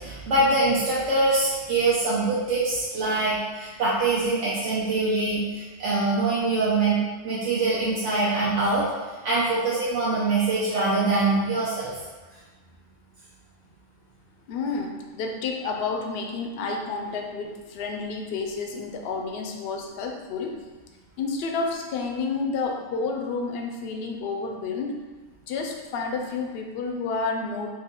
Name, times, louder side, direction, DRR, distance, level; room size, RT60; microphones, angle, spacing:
voice 1, 0.0-8.9 9.2-11.9, right 2 dB, 85° right, -8 dB, 1.1 m, -24 dB
voice 2, 14.5-20.6 21.2-25.0 25.5-27.7, left 4 dB, 65° left, 2 dB, 0.7 m, -30 dB
3.3 x 2.7 x 3.6 m, 1.3 s
omnidirectional pair, 1.2 m